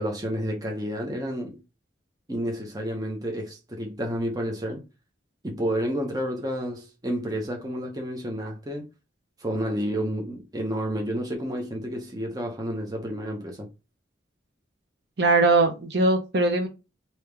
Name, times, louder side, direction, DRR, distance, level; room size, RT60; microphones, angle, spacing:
voice 1, 0.0-1.6 2.3-4.8 5.4-8.9 9.4-13.7, equal, 20° right, 0.7 m, -30 dB
voice 2, 15.2-16.7, right 2 dB, 60° right, 0.8 m, -21 dB
3.4 x 2.8 x 3.3 m
head